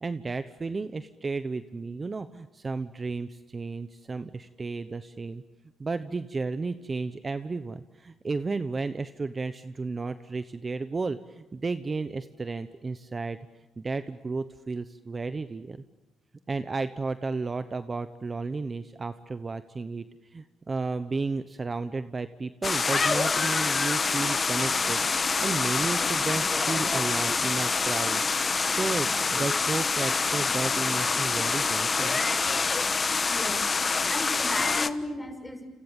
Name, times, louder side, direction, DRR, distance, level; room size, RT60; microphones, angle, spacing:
voice 1, 0.0-5.4 5.8-13.4 13.8-15.8 16.5-20.0 20.3-25.0 25.4-32.2, right 3 dB, 30° right, 11 dB, 1.0 m, -33 dB
sound 1, 22.6-34.9, left 4 dB, 35° left, 1.2 m, -26 dB
voice 2, 33.3-33.7 34.1-35.7, left 1 dB, 15° left, 7 dB, 5.9 m, -35 dB
29.5 x 27.0 x 7.4 m, 1.0 s
cardioid pair, 90°, 0 cm